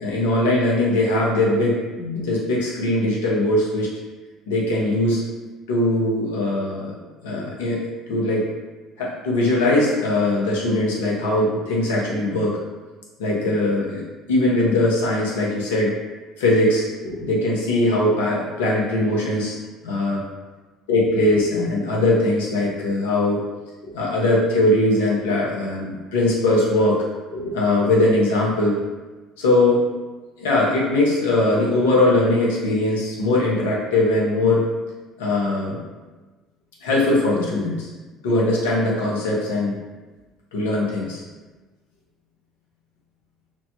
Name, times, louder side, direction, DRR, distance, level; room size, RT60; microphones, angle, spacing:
voice 1, 0.0-3.9 4.5-5.2 5.7-7.0 7.2-7.8 8.1-8.5 9.0-12.5 13.2-15.9 16.4-19.5 19.8-20.2 20.9-23.4 23.8-27.0 27.3-28.8 29.4-29.8 30.4-34.7 35.2-35.8 36.8-37.9 38.2-39.8 40.5-41.2, left 1 dB, 80° left, -4 dB, 0.7 m, -20 dB
3.0 x 2.0 x 2.8 m, 1.2 s
hypercardioid pair, 60°, 0 cm